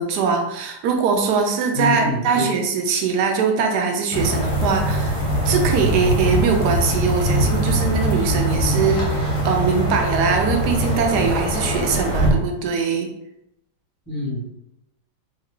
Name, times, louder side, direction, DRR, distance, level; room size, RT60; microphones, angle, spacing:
voice 1, 0.0-5.2 5.4-13.1, right 5 dB, 70° right, 3 dB, 1.1 m, -22 dB
voice 2, 1.7-2.5 8.5-8.8 14.1-14.5, left 1 dB, 15° left, -10 dB, 1.3 m, -26 dB
sound 1, 4.1-12.3, right 1 dB, 55° left, 1.2 m, -22 dB
3.1 x 2.3 x 3.6 m, 0.82 s
omnidirectional pair, 2.0 m